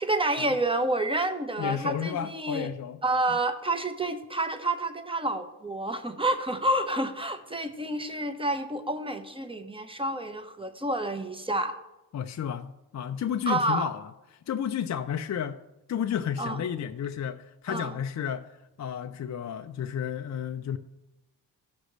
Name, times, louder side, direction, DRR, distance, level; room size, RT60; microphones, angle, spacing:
voice 1, 0.0-2.7 3.0-11.8 13.5-13.9 16.4-16.6 17.7-18.0, right 1 dB, 10° right, 1.1 m, -29 dB
voice 2, 1.6-3.0 12.1-14.1 14.5-15.6 15.9-20.8, left 8 dB, 35° left, 0.5 m, -32 dB
14.5 x 6.3 x 3.2 m
hypercardioid pair, 45°, 48 cm